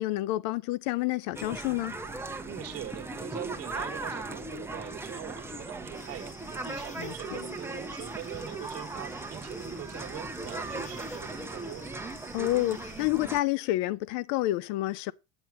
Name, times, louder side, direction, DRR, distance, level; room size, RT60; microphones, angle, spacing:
voice 1, 0.0-2.0 7.0-7.5 12.3-15.1, left 17 dB, 60° left, 0.5 m, -29 dB
sound 1, 1.3-13.4, right 2 dB, 5° right, 0.8 m, -38 dB
voice 2, 2.4-11.9, right 11 dB, 40° right, 1.4 m, -42 dB
sound 2, 5.9-13.1, left 2 dB, 20° left, 1.3 m, -52 dB
8.8 x 4.2 x 6.1 m
supercardioid pair, 115°, 40 cm